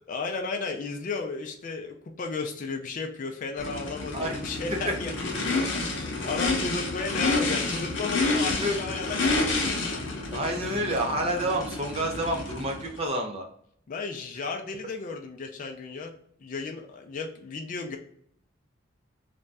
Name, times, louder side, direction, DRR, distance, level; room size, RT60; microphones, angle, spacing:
voice 1, 0.1-5.3 5.6-9.7 13.9-16.1 16.4-18.0, left 4 dB, 45° left, 3 dB, 0.3 m, -34 dB
Race car auto racing / Idling / Accelerating revving vroom, 3.6-13.0, left 3 dB, 75° left, 0.7 m, -29 dB
voice 2, 10.3-13.5, right 1 dB, 30° right, 2 dB, 0.4 m, -29 dB
2.5 x 2.1 x 3.2 m, 0.64 s
head